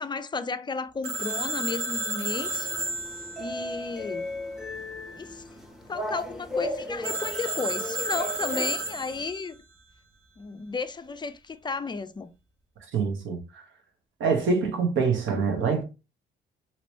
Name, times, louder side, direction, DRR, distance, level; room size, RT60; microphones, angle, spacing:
voice 1, 0.0-2.7 3.4-4.3 5.1-5.4 5.9-9.6 10.4-12.3, left 4 dB, 25° left, 0.4 m, -33 dB
Telephone, 1.0-4.7 7.0-9.6, right 2 dB, 55° right, 1.2 m, -32 dB
sound 1, 2.2-9.2, left 1 dB, ahead, 0.8 m, -36 dB
voice 2, 12.9-13.6 14.2-15.8, right 5 dB, 75° right, 1.0 m, -25 dB
3.0 x 2.9 x 3.0 m
cardioid pair, 90°, 20 cm